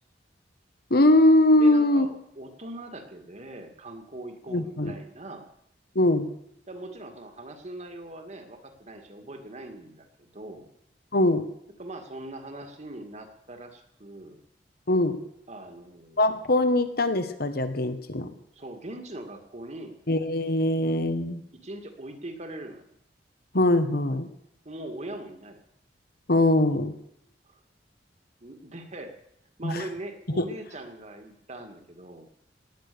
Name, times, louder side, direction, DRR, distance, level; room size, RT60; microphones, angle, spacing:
voice 1, 0.9-2.1 4.5-4.9 5.9-6.3 11.1-11.4 14.9-15.2 16.2-18.3 20.1-21.4 23.5-24.3 26.3-26.9 29.6-29.8 30.3-30.4, left 1 dB, 55° left, 9 dB, 1.5 m, -22 dB
voice 2, 1.6-5.5 6.7-10.7 11.8-14.4 15.5-16.2 18.6-20.0 21.6-22.9 24.6-25.6 27.4-27.6 28.4-29.1 29.6-32.3, right 1 dB, 40° right, 6 dB, 2.2 m, -41 dB
18.5 x 10.0 x 7.0 m, 0.74 s
head